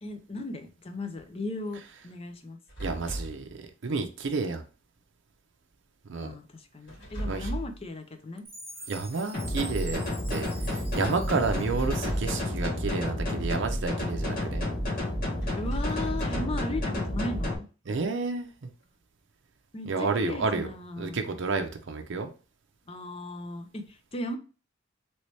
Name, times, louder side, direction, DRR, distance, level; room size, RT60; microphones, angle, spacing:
voice 1, 0.0-2.6 6.2-8.5 8.8-8.9 15.5-17.7 19.7-21.2 22.9-24.4, left 2 dB, 30° left, 0.5 m, -36 dB
sound 1, 2.7-3.4 6.9-7.8 11.5-12.5 15.4-16.6, right 1 dB, 60° left, 1.8 m, -35 dB
voice 2, 2.8-4.6 6.1-6.3 7.2-7.5 8.9-10.0 10.3-14.7 17.9-18.7 19.9-20.7 21.0-22.3, right 4 dB, 60° right, 0.5 m, -30 dB
Chime, 8.5-12.7, right 1 dB, 10° right, 1.0 m, -46 dB
sound 2, 9.3-17.5, left 1 dB, 45° left, 1.0 m, -30 dB
3.1 x 2.9 x 3.1 m
head